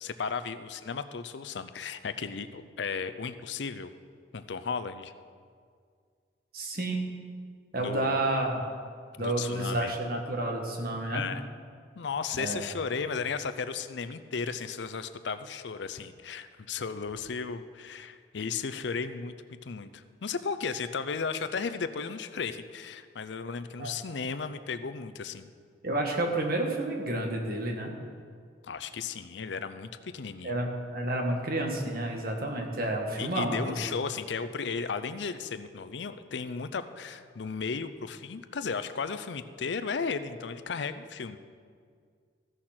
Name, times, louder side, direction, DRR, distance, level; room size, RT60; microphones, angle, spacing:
voice 1, 0.0-3.9 4.3-5.1 7.8-8.3 9.2-9.9 11.1-11.4 12.0-19.3 19.6-25.5 28.6-30.6 33.2-41.4, left 5 dB, 75° left, 11 dB, 0.5 m, -35 dB
voice 2, 6.5-7.1 7.7-8.6 9.2-11.3 12.4-12.6 23.8-23.9 25.8-27.9 30.4-34.0, right 1 dB, 50° right, 2 dB, 1.6 m, -30 dB
14.5 x 6.5 x 5.9 m, 2.1 s
head